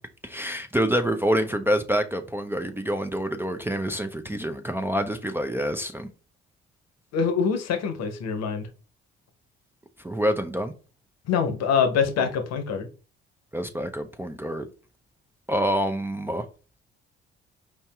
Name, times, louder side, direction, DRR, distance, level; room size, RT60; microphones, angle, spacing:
voice 1, 0.2-6.1 10.0-10.7 12.2-12.3 13.5-14.7 15.5-16.5, equal, 10° right, 0.4 m, -27 dB
voice 2, 7.1-8.7 11.3-12.9, left 6 dB, 65° left, 0.8 m, -24 dB
4.6 x 2.7 x 2.3 m
hypercardioid pair, 55°, 29 cm